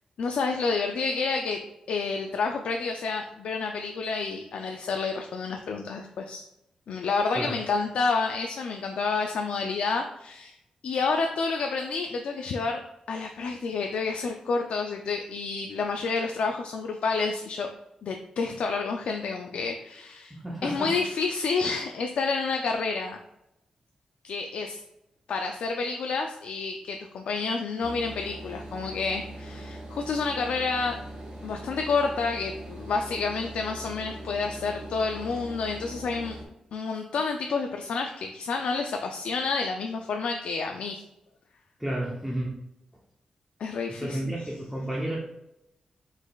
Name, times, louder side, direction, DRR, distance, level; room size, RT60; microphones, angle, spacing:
voice 1, 0.2-1.6 1.9-6.4 6.9-10.5 10.8-12.8 13.1-17.7 18.0-20.4 20.6-23.2 24.2-24.8 25.3-31.0 31.4-36.4 36.7-41.0 43.6-44.3, left 4 dB, 90° left, 3 dB, 0.4 m, -29 dB
voice 2, 20.3-20.9 41.8-42.6 43.9-45.2, right 1 dB, 5° right, -4 dB, 0.7 m, -31 dB
sound 1, 27.8-36.5, right 1 dB, 60° right, 1.2 m, -41 dB
5.0 x 4.0 x 2.3 m, 0.86 s
wide cardioid pair, 140°, 2 cm